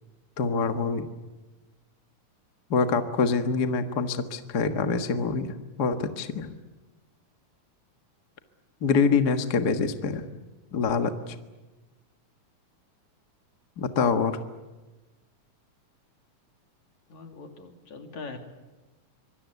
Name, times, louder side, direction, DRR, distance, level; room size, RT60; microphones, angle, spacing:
voice 1, 0.4-1.1 2.7-6.5 8.8-10.2 10.7-11.3 13.8-14.4, left 5 dB, 40° left, 7 dB, 1.5 m, -25 dB
voice 2, 17.1-18.4, left 4 dB, 70° left, 5 dB, 4.0 m, -41 dB
25.0 x 24.5 x 8.3 m, 1.2 s
omnidirectional pair, 3.4 m